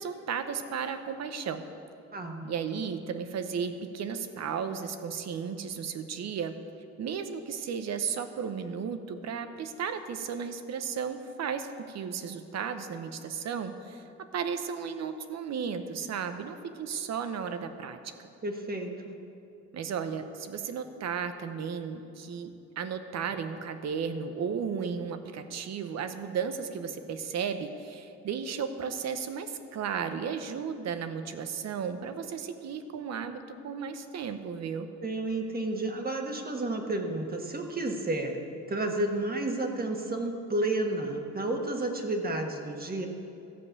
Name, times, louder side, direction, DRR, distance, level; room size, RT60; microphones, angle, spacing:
voice 1, 0.0-1.6 2.4-6.6 7.0-18.3 19.7-34.9, right 6 dB, 60° right, 9 dB, 0.9 m, -34 dB
voice 2, 2.1-2.5 18.4-19.2 35.0-38.4 38.7-43.1, right 2 dB, 30° right, 3 dB, 1.4 m, -31 dB
13.5 x 5.4 x 8.2 m, 2.8 s
cardioid pair, 90°, 30 cm